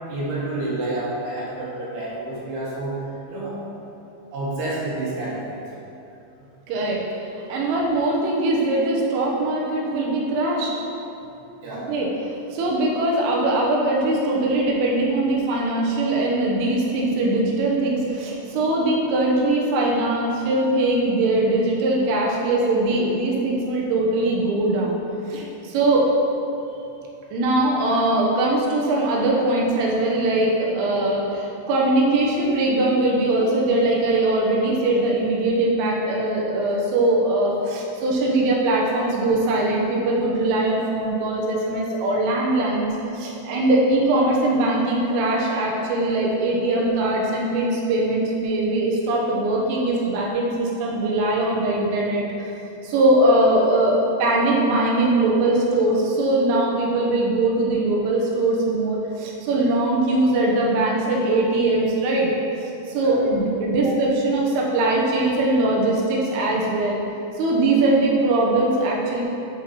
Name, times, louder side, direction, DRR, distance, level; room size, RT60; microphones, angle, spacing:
voice 1, 0.1-3.0 3.3-3.6 4.3-5.7 11.6-11.9 63.0-63.2 63.8-64.0, right 2 dB, 65° right, -6 dB, 3.0 m, -29 dB
voice 2, 6.7-7.0 7.5-10.7 11.9-12.1 12.5-25.0 25.3-26.1 27.3-52.5 52.8-62.3 62.6-67.0 67.4-69.2, right 2 dB, 85° right, -3 dB, 3.7 m, -21 dB
13.0 x 4.5 x 4.2 m, 2.8 s
omnidirectional pair, 5.7 m